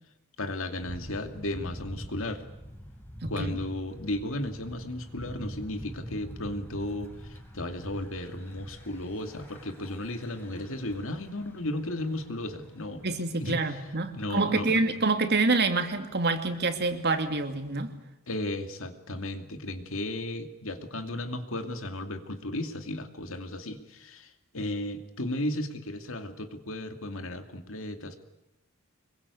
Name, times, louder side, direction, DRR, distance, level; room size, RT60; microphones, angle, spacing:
voice 1, 0.4-2.4 3.3-13.1 13.4-13.8 14.1-14.8 18.3-28.2, left 1 dB, 65° left, 7 dB, 2.6 m, -35 dB
Thunder / Bicycle, 0.8-17.9, equal, 10° left, 4.4 m, -46 dB
voice 2, 13.0-17.9, right 3 dB, 50° right, 7 dB, 2.6 m, -27 dB
25.5 x 22.5 x 8.5 m, 0.89 s
head